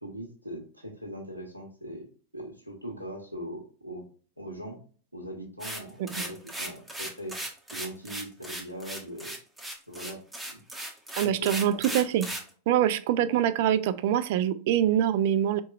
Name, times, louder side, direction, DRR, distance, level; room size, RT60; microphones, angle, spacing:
voice 1, 0.0-2.0 2.3-4.1 4.4-4.8 5.1-7.4 7.7-9.3 9.9-10.2 10.5-10.6 11.2-11.8 13.2-13.3, equal, 85° right, 0 dB, 0.8 m, -40 dB
sound 1, 5.6-12.5, right 1 dB, 5° right, 0.8 m, -36 dB
voice 2, 11.2-12.3 12.7-15.6, right 10 dB, 50° right, 13 dB, 0.3 m, -24 dB
4.5 x 2.9 x 2.3 m, 0.43 s
figure-of-eight pair, 90°, 0 cm